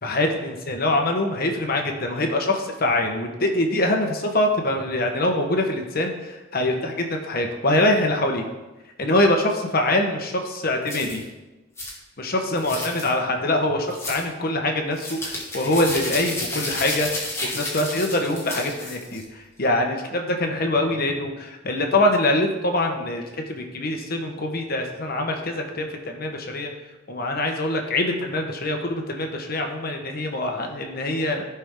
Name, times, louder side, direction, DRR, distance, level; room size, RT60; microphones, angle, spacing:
voice 1, 0.0-8.4 9.0-11.2 12.2-26.7 27.1-31.5, left 1 dB, 50° left, 3 dB, 1.2 m, -24 dB
sound 1, 10.9-11.2 11.8-11.9 12.6-13.1 13.9-14.2 14.9-19.2, left 1 dB, 15° left, 1.9 m, -31 dB
14.5 x 5.8 x 3.7 m, 1.1 s
head